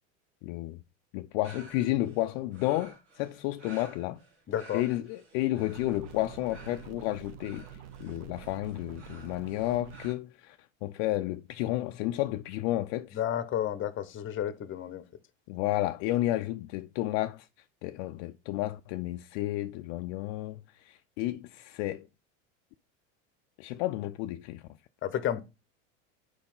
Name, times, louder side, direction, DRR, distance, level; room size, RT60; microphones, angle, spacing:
voice 1, 0.4-0.8 1.1-4.2 4.7-7.7 8.0-13.2 15.5-17.5 17.8-22.1 23.6-24.7, left 16 dB, 60° left, 0.5 m, -32 dB
sound 1, 1.4-10.1, right 2 dB, 75° right, 2.4 m, -54 dB
voice 2, 4.5-4.8 13.1-15.0 25.0-25.4, left 10 dB, 35° left, 0.9 m, -31 dB
sound 2, 5.7-10.1, right 9 dB, 50° right, 0.8 m, -47 dB
4.8 x 4.4 x 5.4 m
hypercardioid pair, 100°, 36 cm